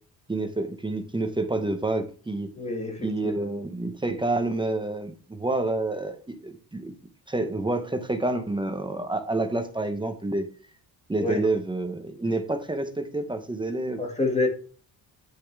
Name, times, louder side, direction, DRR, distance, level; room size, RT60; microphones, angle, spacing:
voice 1, 0.3-2.5 3.0-6.9 7.3-10.5 11.1-14.0, right 2 dB, 10° right, 6 dB, 0.7 m, -28 dB
voice 2, 2.6-3.3 11.2-11.4 14.0-14.5, left 2 dB, 15° left, 2 dB, 1.9 m, -27 dB
10.0 x 6.5 x 3.4 m, 0.40 s
wide cardioid pair, 175°, 42 cm